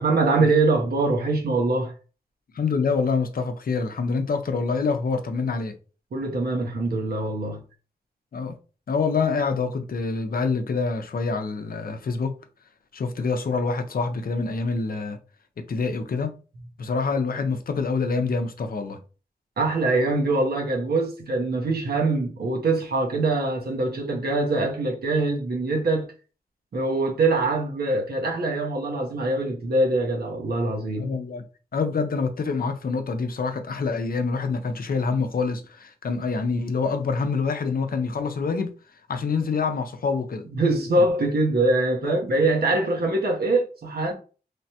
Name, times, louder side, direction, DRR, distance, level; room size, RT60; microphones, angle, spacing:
voice 1, 0.0-1.9 6.1-7.6 19.6-26.1 26.7-31.1 40.6-44.1, right 2 dB, 75° right, 0.7 m, -23 dB
voice 2, 2.5-5.8 8.3-8.6 8.9-12.3 12.9-15.2 15.7-16.3 16.8-19.0 31.0-31.4 31.7-38.7 39.1-40.4 42.0-42.2, left 4 dB, 65° left, 0.5 m, -26 dB
3.2 x 2.1 x 2.7 m
cardioid pair, 60°, 16 cm